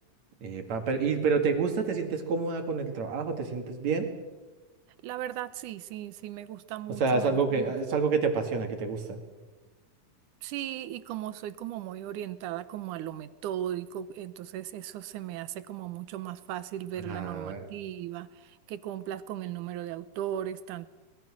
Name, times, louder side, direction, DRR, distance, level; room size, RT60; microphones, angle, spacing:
voice 1, 0.4-4.1 7.0-9.2 17.0-17.7, right 4 dB, 60° right, 5 dB, 3.3 m, -28 dB
voice 2, 5.0-7.7 10.4-20.9, right 11 dB, 75° right, 14 dB, 2.3 m, -37 dB
24.5 x 21.0 x 6.3 m, 1.2 s
omnidirectional pair, 3.8 m